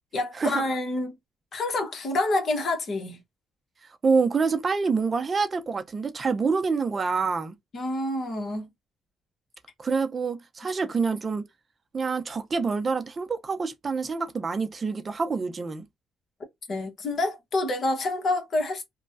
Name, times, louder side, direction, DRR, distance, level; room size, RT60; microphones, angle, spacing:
voice 1, 0.1-1.2 1.5-3.2 7.7-8.7 16.7-18.8, left 2 dB, 55° left, 1.1 m, -27 dB
voice 2, 3.8-7.5 9.8-11.5 11.9-15.8, right 4 dB, 35° right, 0.6 m, -26 dB
3.1 x 2.2 x 2.5 m
cardioid pair, 90°, 0 cm